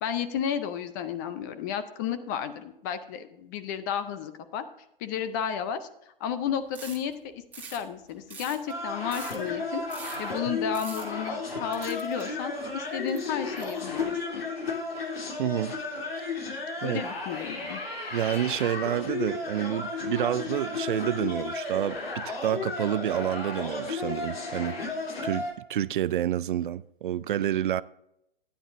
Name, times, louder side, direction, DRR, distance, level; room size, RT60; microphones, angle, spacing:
voice 1, 0.0-4.6 5.0-5.9 6.2-7.3 7.7-9.8 10.2-14.4 16.8-17.8, left 8 dB, 20° left, 0.5 m, -32 dB
sound 1, 6.7-7.1 7.5-7.8 8.1-9.5 9.9-10.4 10.7-11.3 11.7-12.4 13.1-14.0, right 4 dB, 5° right, 1.6 m, -44 dB
sound 2, 8.7-25.5, left 3 dB, 85° left, 3.4 m, -34 dB
voice 2, 15.4-15.8 16.8-17.0 18.1-24.8 25.2-27.8, right 11 dB, 60° right, 0.4 m, -29 dB
12.5 x 10.5 x 2.6 m
hypercardioid pair, 145°, 29 cm